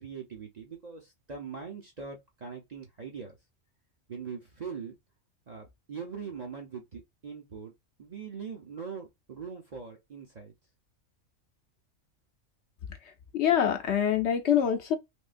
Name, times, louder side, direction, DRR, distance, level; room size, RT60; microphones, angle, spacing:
voice 1, 0.0-3.4 4.1-4.9 5.5-7.7 8.0-10.5, right 6 dB, 40° right, 0.7 m, -41 dB
voice 2, 13.3-15.0, left 9 dB, 65° left, 0.8 m, -25 dB
3.6 x 3.2 x 2.5 m
omnidirectional pair, 1.4 m